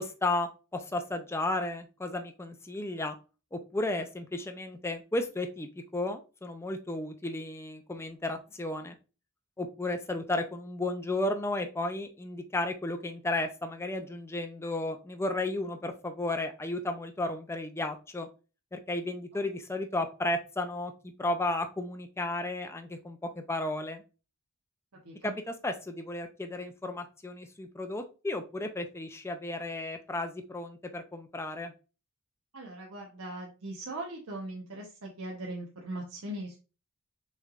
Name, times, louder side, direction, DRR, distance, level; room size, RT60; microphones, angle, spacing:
voice 1, 0.0-3.2 3.5-8.9 9.6-18.3 18.7-20.9 21.2-24.0 25.2-31.7, left 2 dB, 10° left, 6 dB, 0.4 m, -33 dB
voice 2, 24.9-25.4 32.5-36.6, right 1 dB, 70° right, -2 dB, 0.9 m, -40 dB
6.4 x 3.2 x 2.4 m, 0.32 s
head